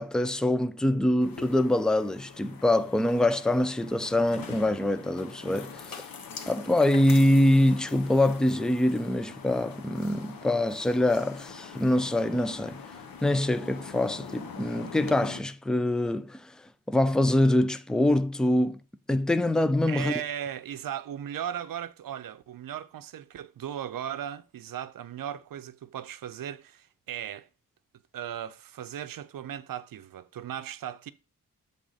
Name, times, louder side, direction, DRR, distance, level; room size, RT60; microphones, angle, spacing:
voice 1, 0.0-6.0 6.5-12.8 13.2-16.5 16.9-18.8 19.1-20.1, left 1 dB, ahead, 0.4 m, -24 dB
sound 1, 1.2-15.4, left 5 dB, 90° left, 1.0 m, -44 dB
voice 2, 19.9-27.5 28.1-31.1, right 10 dB, 80° right, 0.6 m, -37 dB
7.5 x 3.6 x 4.0 m
wide cardioid pair, 115°, 34 cm